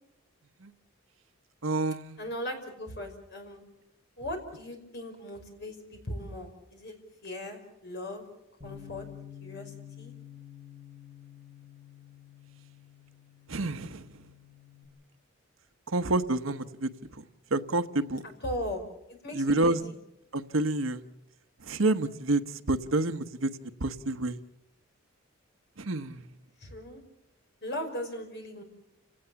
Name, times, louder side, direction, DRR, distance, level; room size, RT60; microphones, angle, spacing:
voice 1, 1.6-2.2 13.5-14.1 15.9-17.2 17.5-18.2 19.3-19.8 20.3-21.0 21.7-23.5 23.8-24.4 25.8-26.2, right 2 dB, 75° right, 10 dB, 1.1 m, -28 dB
voice 2, 2.2-3.6 4.2-7.0 7.2-8.2 8.6-9.1 9.4-10.1 18.4-18.8 19.1-19.9 26.6-27.0 27.6-28.6, left 1 dB, 55° left, 4 dB, 5.4 m, -38 dB
Bass guitar, 8.6-14.9, left 10 dB, 25° right, 7.6 m, -49 dB
30.0 x 18.0 x 7.0 m, 0.88 s
head